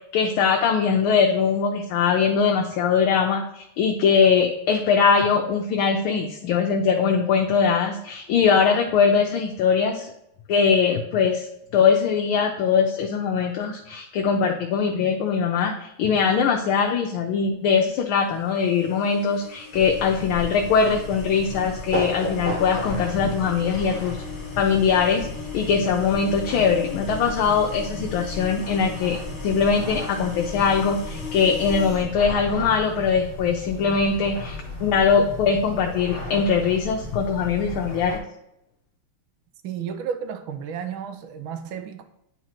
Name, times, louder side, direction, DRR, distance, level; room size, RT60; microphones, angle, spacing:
voice 1, 0.0-10.1 10.5-11.5 11.7-24.2 24.6-25.3 25.5-38.2, left 6 dB, 80° left, 1.5 m, -21 dB
sound 1, 18.2-32.1, left 5 dB, 55° left, 1.9 m, -40 dB
sound 2, 19.7-38.2, left 1 dB, 25° left, 1.6 m, -34 dB
voice 2, 39.6-42.0, right 7 dB, 80° right, 1.5 m, -32 dB
9.4 x 4.0 x 2.9 m
omnidirectional pair, 2.3 m